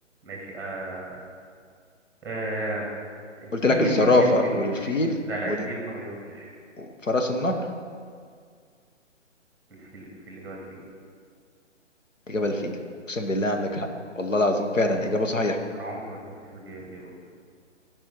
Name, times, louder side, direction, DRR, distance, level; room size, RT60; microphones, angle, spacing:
voice 1, 0.2-1.2 2.2-2.9 3.4-5.0 5.2-6.5 9.7-10.8 15.7-16.2 16.4-17.1, right 1 dB, 5° right, -2 dB, 1.6 m, -34 dB
voice 2, 3.5-5.1 5.5-5.6 6.8-7.6 12.3-12.7 13.1-13.9 14.2-15.6, left 2 dB, 85° left, 3 dB, 1.3 m, -23 dB
13.0 x 5.4 x 5.5 m, 2.1 s
figure-of-eight pair, 135°, 37 cm